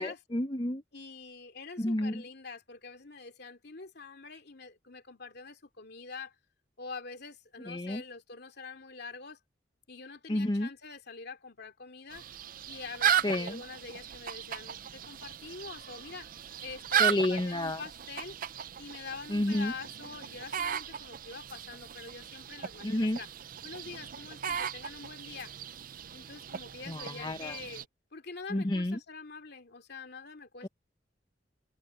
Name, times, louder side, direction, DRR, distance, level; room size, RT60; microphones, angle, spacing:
voice 1, 0.0-0.8 1.8-2.2 7.7-8.0 10.3-10.7 13.2-13.6 17.0-17.8 19.3-19.7 22.8-23.2 26.9-27.6 28.5-29.0 30.6-30.7, left 1 dB, 25° left, 0.8 m, -30 dB
voice 2, 0.9-6.3 6.8-9.4 9.9-12.2 12.7-16.3 16.6-18.4 18.8-23.3 23.6-25.5 26.1-27.9 28.1-30.7, left 4 dB, 60° left, 2.8 m, -45 dB
sound 1, 12.1-27.8, right 8 dB, 50° right, 0.5 m, -36 dB
head